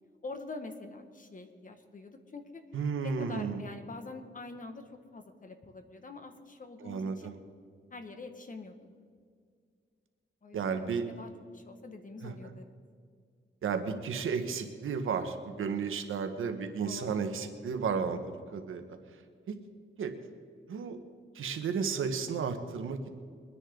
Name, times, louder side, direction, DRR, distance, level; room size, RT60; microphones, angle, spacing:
voice 1, 0.2-2.6 3.0-4.8 5.1-7.3 7.9-8.8 10.4-10.8 11.1-12.7 16.9-17.2 20.2-20.3, left 3 dB, 40° left, 6 dB, 1.7 m, -45 dB
voice 2, 2.7-3.6 6.8-7.4 10.5-11.0 12.2-12.5 13.6-18.8 19.5-19.6 20.0-20.1 20.7-21.0 21.3-23.1, right 6 dB, 90° right, 7 dB, 1.3 m, -33 dB
23.5 x 10.0 x 3.9 m, 2.1 s
cardioid pair, 80°, 20 cm